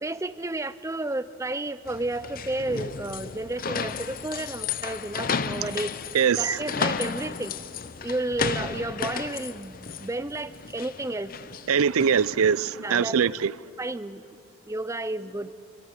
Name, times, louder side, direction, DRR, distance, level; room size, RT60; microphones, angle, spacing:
voice 1, 0.0-6.0 6.4-7.6 8.0-11.4 12.8-13.4 13.8-14.4 14.7-15.5, right 2 dB, 15° right, 0.5 m, -32 dB
sound 1, 1.9-12.3, left 5 dB, 40° left, 0.6 m, -33 dB
voice 2, 6.1-6.5 11.7-13.5, right 7 dB, 90° right, 0.5 m, -22 dB
26.0 x 25.5 x 6.5 m
head